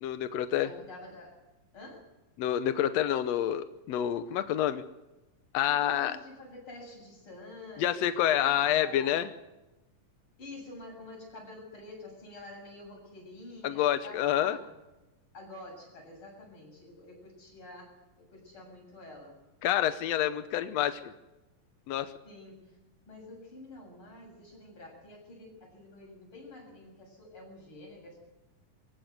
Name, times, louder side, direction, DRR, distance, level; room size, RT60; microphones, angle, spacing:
voice 1, 0.0-0.7 2.4-4.8 5.5-6.1 7.8-9.3 13.6-14.6 19.6-21.0 21.9-22.1, left 11 dB, 75° left, 10 dB, 1.6 m, -28 dB
voice 2, 0.5-1.4 1.7-2.1 5.7-9.3 10.4-14.8 15.3-19.3 22.2-22.8 23.1-28.2, left 2 dB, 35° left, 0 dB, 8.2 m, -48 dB
24.0 x 15.5 x 8.1 m, 1.0 s
omnidirectional pair, 3.9 m